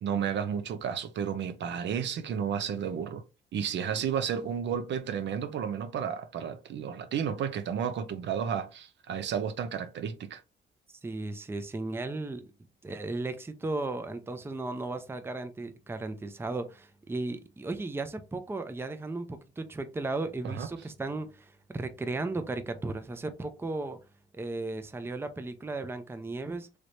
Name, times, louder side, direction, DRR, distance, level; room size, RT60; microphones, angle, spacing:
voice 1, 0.0-3.2 3.5-10.4 20.4-20.7, right 8 dB, 60° right, 0.6 m, -32 dB
voice 2, 11.0-12.5 12.8-24.0 24.3-26.7, right 2 dB, 10° right, 0.5 m, -35 dB
3.2 x 3.1 x 2.6 m
cardioid pair, 85°, 21 cm